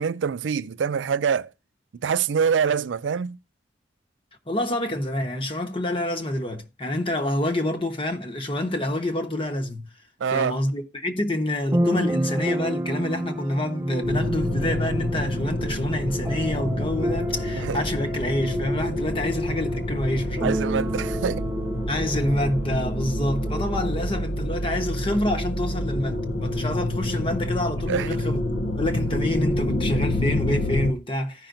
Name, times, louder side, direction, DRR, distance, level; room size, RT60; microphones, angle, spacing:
voice 1, 0.0-1.5 2.0-3.4 10.2-10.6 17.6-17.8 20.4-21.5 27.9-28.2, right 6 dB, 85° right, 0.4 m, -25 dB
voice 2, 4.5-9.9 10.3-20.5 21.9-28.4 28.8-31.5, left 1 dB, 30° left, 1.1 m, -27 dB
sound 1, 11.6-24.2, right 1 dB, 15° right, 0.3 m, -31 dB
sound 2, 14.0-30.9, left 1 dB, 55° left, 0.7 m, -28 dB
15.0 x 5.7 x 2.6 m
head